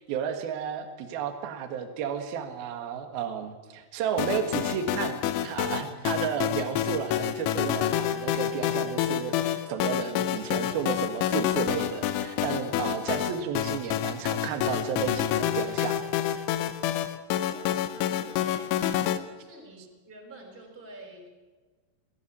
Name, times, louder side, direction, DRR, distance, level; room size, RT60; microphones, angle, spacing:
voice 1, 0.0-16.0, right 7 dB, 60° right, 7 dB, 3.3 m, -32 dB
sound 1, 4.2-19.2, left 11 dB, 85° left, 3.4 m, -28 dB
voice 2, 17.3-19.1 19.4-21.3, right 1 dB, 10° right, 1 dB, 5.1 m, -47 dB
22.0 x 14.5 x 8.6 m, 1.3 s
omnidirectional pair, 5.4 m